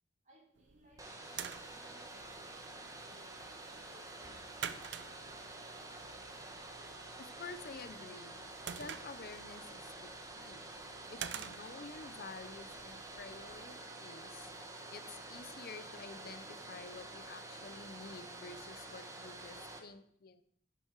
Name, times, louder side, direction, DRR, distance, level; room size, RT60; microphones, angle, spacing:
voice 1, 0.2-4.4, left 1 dB, 45° right, -4 dB, 4.3 m, -66 dB
sound 1, 0.6-13.6, right 8 dB, 75° right, 0.6 m, -50 dB
Domestic sounds home sounds, 1.0-19.8, right 2 dB, 20° right, 1.3 m, -49 dB
sound 2, 2.7-14.1 14.4-14.5 16.1-16.2, right 3 dB, ahead, 5.1 m, -68 dB
voice 2, 7.2-8.5 8.7-10.7 11.1-14.5 14.9-20.4, left 4 dB, 55° left, 12 dB, 0.7 m, -50 dB
11.5 x 7.8 x 4.7 m, 0.66 s
head